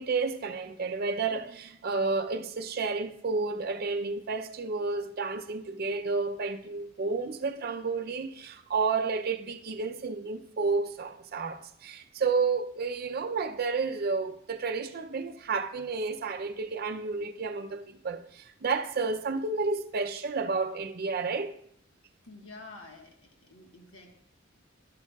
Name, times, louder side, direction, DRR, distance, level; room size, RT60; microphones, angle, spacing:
voice 1, 0.0-21.5, right 4 dB, 50° right, 0.5 m, -31 dB
voice 2, 22.2-24.1, left 3 dB, 80° left, 1.4 m, -49 dB
11.5 x 11.5 x 2.3 m
head